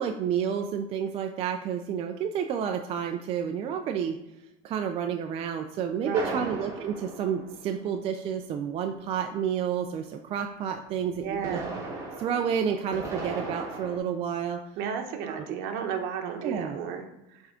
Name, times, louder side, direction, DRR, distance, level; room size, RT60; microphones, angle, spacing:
voice 1, 0.0-4.2 4.6-11.6 12.2-14.6 15.2-15.4 16.4-16.8, right 8 dB, 35° right, 5 dB, 0.4 m, -30 dB
voice 2, 6.0-6.5 11.2-11.8 14.8-17.4, right 7 dB, 60° right, 4 dB, 1.0 m, -34 dB
sound 1, 6.1-8.2 11.2-14.0, right 3 dB, 15° right, 1.5 m, -37 dB
7.8 x 3.5 x 3.7 m, 0.92 s
cardioid pair, 145°, 17 cm